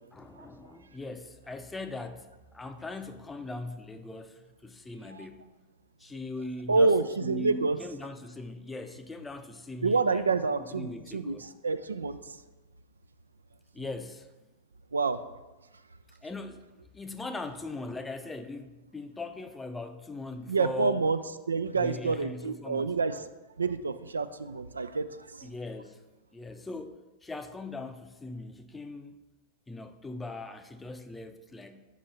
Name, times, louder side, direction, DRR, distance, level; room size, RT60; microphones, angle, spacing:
voice 1, 0.1-5.4 6.0-10.3 10.6-11.5 13.7-14.3 16.2-16.6 16.9-21.0 21.7-22.9 25.4-26.0 26.3-29.2 29.7-31.9, left 2 dB, 10° left, 8 dB, 0.5 m, -40 dB
voice 2, 6.7-7.8 9.8-12.2 14.9-15.2 20.5-21.2 21.5-23.2 23.6-25.1, right 4 dB, 75° right, 11 dB, 0.3 m, -27 dB
6.2 x 5.3 x 4.1 m, 1.1 s
figure-of-eight pair, 90°, 0 cm